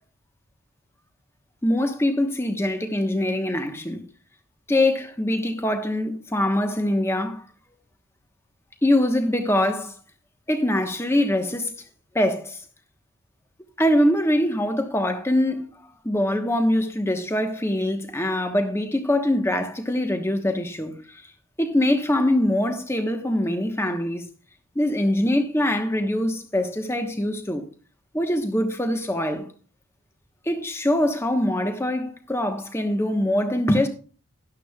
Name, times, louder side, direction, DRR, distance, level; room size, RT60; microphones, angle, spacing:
voice 1, 1.6-4.0 4.7-7.4 8.8-9.9 10.5-11.7 12.1-12.6 13.8-21.0 21.6-24.3 24.7-27.6 28.1-29.5 30.5-33.9, left 1 dB, 10° left, 1.1 m, -23 dB
13.0 x 11.5 x 2.4 m
head